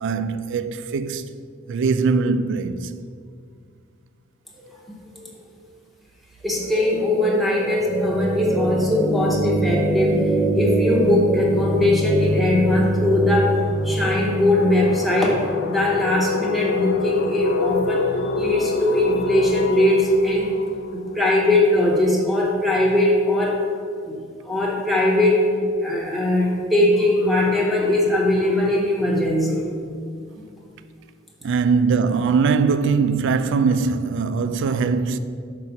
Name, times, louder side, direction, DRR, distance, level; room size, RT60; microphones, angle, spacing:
voice 1, 0.0-1.3 1.7-2.9 31.4-35.2, right 5 dB, 65° right, 0.3 m, -21 dB
voice 2, 6.4-13.5 13.8-18.1 18.3-20.6 20.9-23.6 24.0-24.2 24.4-25.4 25.8-29.7, left 1 dB, ahead, 0.8 m, -20 dB
sound 1, 6.6-18.7, right 1 dB, 20° left, 1.3 m, -25 dB
sound 2, 10.2-10.3 10.5-22.1, left 3 dB, 60° left, 0.4 m, -28 dB
5.2 x 4.0 x 5.8 m
head